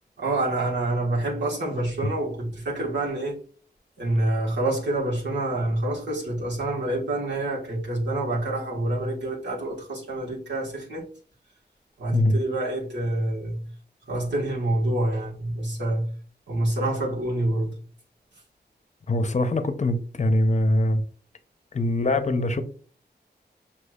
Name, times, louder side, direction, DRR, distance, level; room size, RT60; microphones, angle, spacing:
voice 1, 0.2-3.4 4.0-11.1 12.0-13.6 14.1-16.1 16.5-17.8, right 1 dB, 85° right, 1.5 m, -27 dB
voice 2, 19.1-21.0 21.7-22.6, left 1 dB, 40° left, 0.6 m, -23 dB
6.2 x 2.8 x 2.3 m
wide cardioid pair, 95°, 18 cm